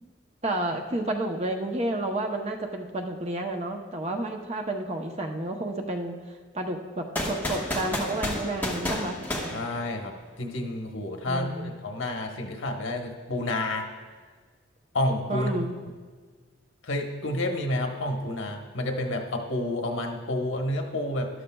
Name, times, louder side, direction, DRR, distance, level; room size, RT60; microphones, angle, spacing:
voice 1, 0.4-6.2 6.5-9.2 11.3-11.7 15.3-15.8, right 1 dB, 30° right, 2 dB, 0.7 m, -31 dB
sound 1, 7.2-10.3, left 1 dB, 10° left, 1.3 m, -31 dB
voice 2, 9.5-11.5 11.8-13.9 14.9-15.7 16.8-21.3, left 1 dB, 80° left, 3 dB, 1.2 m, -29 dB
13.0 x 11.5 x 2.3 m, 1.5 s
head